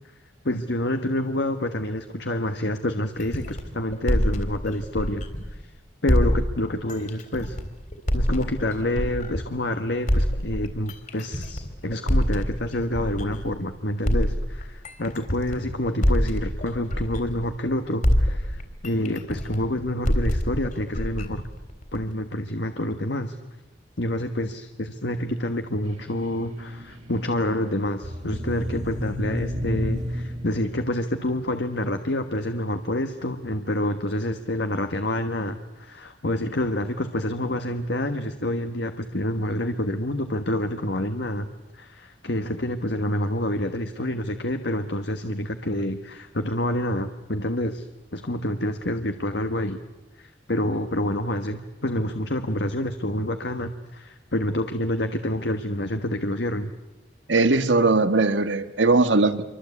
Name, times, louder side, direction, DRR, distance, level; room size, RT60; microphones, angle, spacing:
voice 1, 0.4-5.2 5.5-5.6 6.0-7.6 8.1-21.4 21.9-23.3 24.0-41.5 41.7-47.9 48.1-49.8 50.2-56.7, left 1 dB, 65° left, 7 dB, 1.4 m, -28 dB
sound 1, 3.2-5.6 6.1-9.6 10.1-13.6 14.0-17.7 18.0-22.1, equal, 45° left, 3.6 m, -26 dB
sound 2, 25.8-31.1, left 1 dB, 40° right, 2.1 m, -33 dB
voice 2, 57.3-59.4, right 3 dB, 85° right, 9 dB, 1.7 m, -19 dB
27.5 x 24.5 x 8.4 m, 1.0 s
head